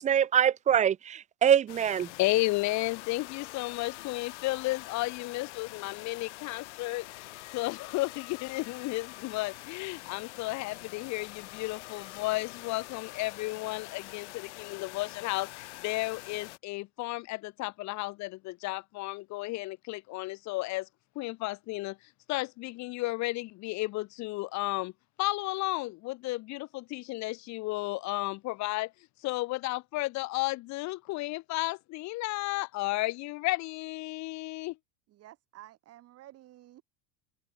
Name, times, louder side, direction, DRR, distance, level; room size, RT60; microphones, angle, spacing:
voice 1, 0.0-2.1, right 9 dB, 20° right, 0.4 m, -24 dB
sound 1, 1.7-16.6, left 19 dB, 85° left, 3.4 m, -45 dB
voice 2, 2.2-7.1 7.5-20.9 21.2-22.0 22.3-24.9 25.2-28.9 29.2-34.8, left 20 dB, 55° left, 1.8 m, -33 dB
voice 3, 35.1-36.8, right 14 dB, 45° right, 2.7 m, -52 dB
open air
supercardioid pair, 120°, 34 cm